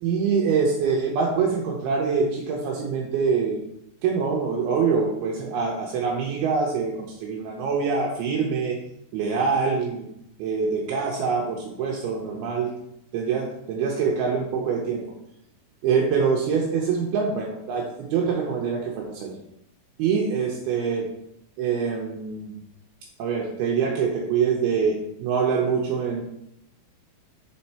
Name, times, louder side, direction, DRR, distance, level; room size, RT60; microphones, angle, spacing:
voice 1, 0.0-3.6 4.0-8.8 9.1-10.1 10.4-12.7 13.1-15.0 15.8-19.3 20.0-21.1 21.6-22.5 23.2-26.2, right 5 dB, 80° right, -1 dB, 2.6 m, -24 dB
6.6 x 4.5 x 4.2 m, 0.80 s
omnidirectional pair, 4.7 m